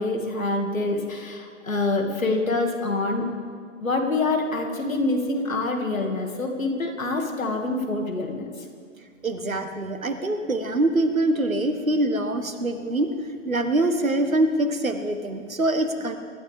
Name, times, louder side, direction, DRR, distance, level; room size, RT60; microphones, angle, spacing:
voice 1, 0.0-3.3 3.8-8.7, left 2 dB, 80° left, 3 dB, 2.6 m, -26 dB
voice 2, 9.2-13.1 13.5-16.2, right 1 dB, 90° right, 8 dB, 1.6 m, -24 dB
24.0 x 13.0 x 3.7 m, 2.1 s
figure-of-eight pair, 115°, 40 cm